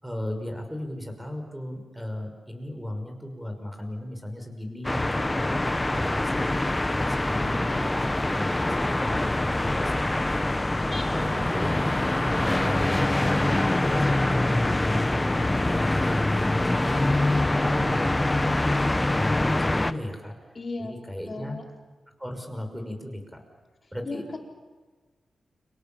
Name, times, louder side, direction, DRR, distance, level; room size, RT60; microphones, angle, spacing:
voice 1, 0.0-7.8 8.2-10.5 10.8-11.9 12.4-18.7 18.9-20.3 20.8-21.6 22.2-23.4 23.9-24.2, left 1 dB, 5° right, 5 dB, 5.9 m, -36 dB
sound 1, 4.8-19.9, left 2 dB, 15° left, 1.1 m, -24 dB
voice 2, 20.5-20.9 21.3-21.6 24.0-24.4, left 3 dB, 40° left, 1 dB, 4.7 m, -35 dB
30.0 x 25.0 x 7.4 m, 1.4 s
cardioid pair, 85°, 0 cm